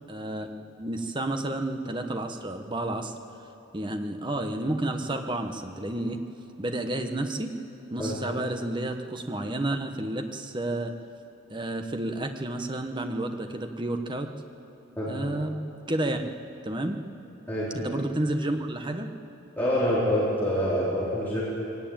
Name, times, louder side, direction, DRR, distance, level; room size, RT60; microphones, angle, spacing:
voice 1, 0.1-0.5 0.8-3.1 3.7-6.2 6.6-7.5 7.9-10.9 11.5-14.3 15.1-15.6 15.9-16.2 16.6-17.0 17.7-19.1, right 1 dB, 20° right, 5 dB, 1.1 m, -30 dB
voice 2, 19.6-21.4, equal, 10° left, -10 dB, 4.4 m, -26 dB
21.5 x 18.0 x 8.9 m, 2.9 s
head